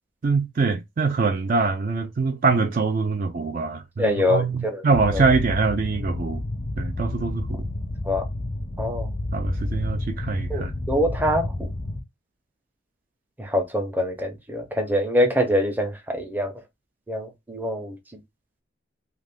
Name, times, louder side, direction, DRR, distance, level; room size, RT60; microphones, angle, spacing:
voice 1, 0.2-6.4 6.8-7.7 9.3-10.7, right 4 dB, 50° right, 0.4 m, -24 dB
voice 2, 4.0-4.8 5.1-5.2 8.0-8.2 8.8-9.1 10.5-11.7 13.4-16.5 17.1-18.0, left 1 dB, 10° right, 0.6 m, -24 dB
sound 1, 4.9-12.0, left 2 dB, 30° left, 0.4 m, -30 dB
2.4 x 2.4 x 3.4 m
head